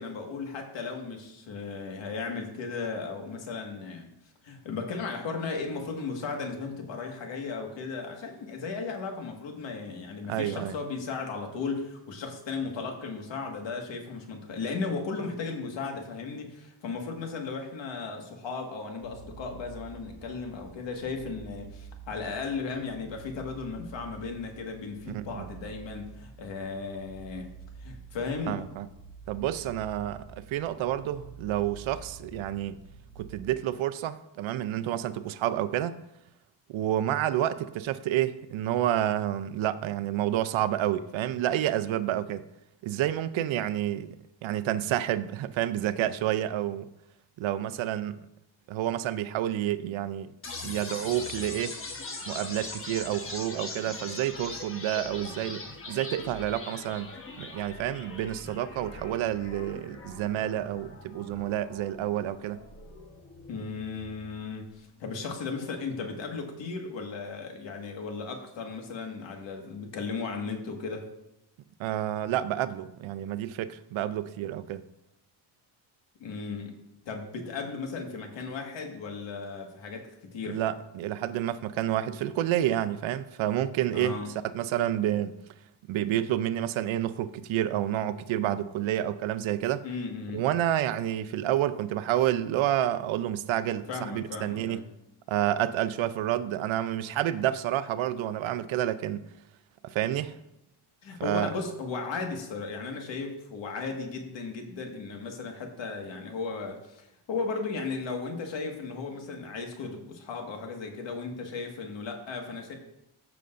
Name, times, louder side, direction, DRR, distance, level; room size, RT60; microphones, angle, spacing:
voice 1, 0.0-4.1 4.4-27.5 27.8-28.6 63.5-71.1 76.2-76.8 77.1-80.6 83.9-84.3 89.8-90.4 93.9-94.9 101.0-112.7, left 4 dB, 65° left, 1.8 m, -36 dB
voice 2, 10.3-10.7 25.1-25.5 28.5-28.9 29.3-32.8 33.2-36.0 36.7-42.4 42.8-44.1 44.4-46.9 47.4-48.2 48.7-50.3 50.6-51.8 52.3-57.1 57.4-62.6 71.8-74.8 80.4-85.4 85.9-89.8 90.3-94.8 95.3-99.2 99.8-100.4 101.2-101.5, right 12 dB, 70° right, 0.6 m, -29 dB
sound 1, 19.0-33.4, right 5 dB, 45° left, 2.7 m, -48 dB
sound 2, 50.4-64.4, left 3 dB, 25° left, 1.1 m, -41 dB
14.5 x 6.9 x 2.6 m
cardioid pair, 145°, 48 cm